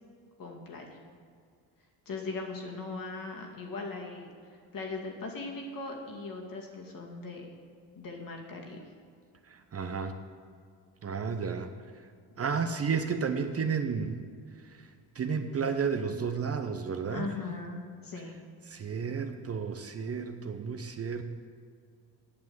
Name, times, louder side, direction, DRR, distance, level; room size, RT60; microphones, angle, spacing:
voice 1, 0.4-1.0 2.1-4.3 4.7-7.5 7.9-8.8 17.1-18.4, left 3 dB, 50° left, 1 dB, 2.2 m, -39 dB
voice 2, 9.5-10.2 11.0-11.7 12.4-14.1 15.1-17.3 18.7-21.2, right 6 dB, 35° right, 7 dB, 0.8 m, -32 dB
8.8 x 7.1 x 8.2 m, 2.2 s
cardioid pair, 90°, 42 cm